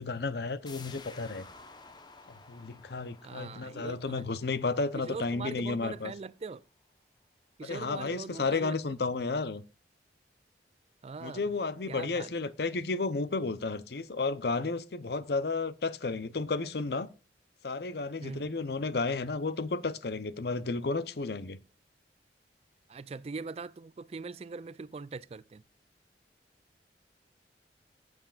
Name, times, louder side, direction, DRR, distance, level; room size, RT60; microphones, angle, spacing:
voice 1, 0.0-1.5 2.3-6.1 7.6-9.6 11.2-17.1 17.6-21.6, left 3 dB, 60° left, 0.6 m, -32 dB
sound 1, 0.7-6.1 6.5-6.6, left 4 dB, 25° left, 0.9 m, -53 dB
voice 2, 3.2-4.2 4.9-6.6 7.6-8.8 11.0-11.4 11.9-12.3 18.2-18.5 22.9-25.6, right 4 dB, 35° right, 0.3 m, -41 dB
14.5 x 7.9 x 2.4 m
head